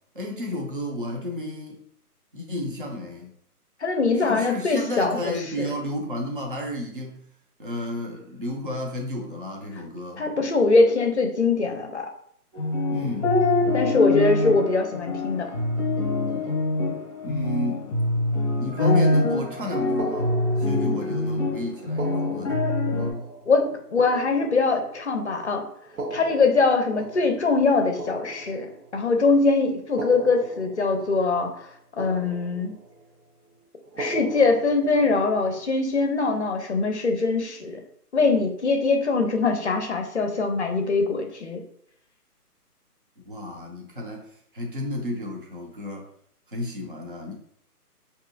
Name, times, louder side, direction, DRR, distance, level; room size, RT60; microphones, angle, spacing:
voice 1, 0.1-1.8 2.3-3.3 4.2-7.3 7.6-10.2 12.9-13.3 17.2-17.8 18.6-20.3 20.6-22.6 43.3-46.1 46.5-47.3, left 1 dB, 35° right, 0 dB, 0.5 m, -32 dB
voice 2, 3.8-5.7 10.2-12.1 13.7-15.5 23.5-25.6 26.1-31.7 32.0-32.7 34.0-37.8 38.1-41.6, left 3 dB, 45° left, 4 dB, 0.6 m, -22 dB
sound 1, 12.5-23.1, left 2 dB, 20° left, 0.8 m, -24 dB
sound 2, 20.0-21.2 21.9-25.2 25.8-29.1 29.8-31.7 32.0-33.0 33.9-35.7, right 1 dB, 65° right, 0.9 m, -38 dB
4.6 x 2.7 x 2.5 m, 0.67 s
hypercardioid pair, 165°, 47 cm